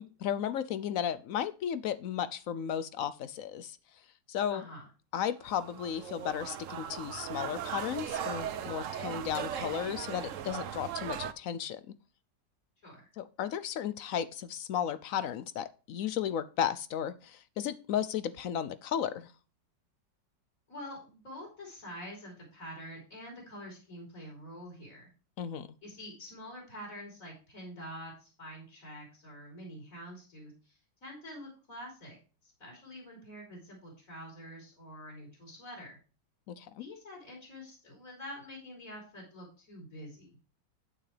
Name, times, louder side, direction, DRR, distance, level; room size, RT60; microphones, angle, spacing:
voice 1, 0.0-3.8 4.3-4.6 5.1-11.8 13.2-19.3 25.4-25.7 36.5-36.8, left 9 dB, 70° left, 14 dB, 0.8 m, -34 dB
voice 2, 4.5-4.9 12.8-13.1 20.7-25.1 25.8-32.2 32.4-36.0 36.8-40.3, equal, 50° left, -2 dB, 4.0 m, -46 dB
sound 1, 5.4-11.3, right 9 dB, 60° right, 0.9 m, -38 dB
9.0 x 8.6 x 3.3 m, 0.34 s
omnidirectional pair, 1.9 m